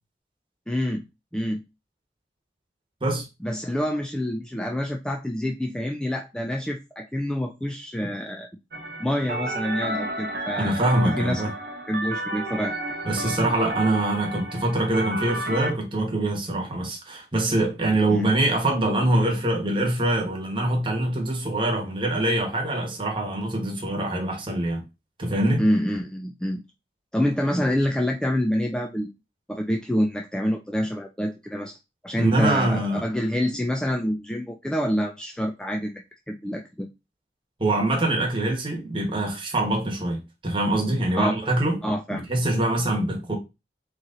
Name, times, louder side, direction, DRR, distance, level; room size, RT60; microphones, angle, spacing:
voice 1, 0.7-1.0 1.3-1.6 3.4-8.5 9.0-11.4 11.9-12.7 18.1-18.3 25.6-26.6 27.1-29.1 29.5-31.8 32.0-36.9 41.2-41.3 41.8-42.3, equal, 5° left, 0.3 m, -27 dB
sound 1, 8.7-15.7, right 1 dB, 60° right, 0.9 m, -32 dB
voice 2, 10.6-11.5 13.0-24.8 25.2-25.6 32.2-33.0 37.6-41.8 42.1-43.3, right 1 dB, 30° right, 1.2 m, -24 dB
4.0 x 3.1 x 3.7 m
head